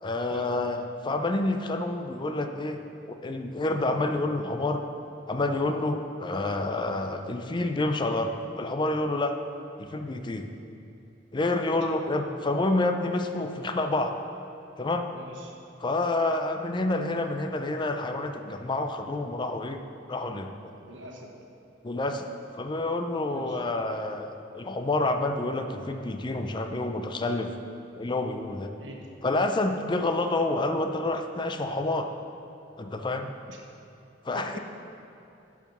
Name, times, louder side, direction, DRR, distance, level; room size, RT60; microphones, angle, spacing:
voice 1, 0.0-2.8 3.1-4.8 5.3-9.3 9.8-10.5 11.3-14.1 14.8-15.1 15.8-19.8 20.1-20.7 21.8-22.3 22.5-27.5 27.9-28.7 29.2-32.1 32.8-33.3 34.2-34.5, left 2 dB, 25° left, 6 dB, 0.5 m, -28 dB
voice 2, 15.1-15.5 20.8-21.3 23.2-23.6 28.8-29.1 33.5-33.6 34.3-34.6, right 1 dB, 90° right, 1 dB, 1.2 m, -44 dB
10.5 x 4.8 x 6.0 m, 2.6 s
head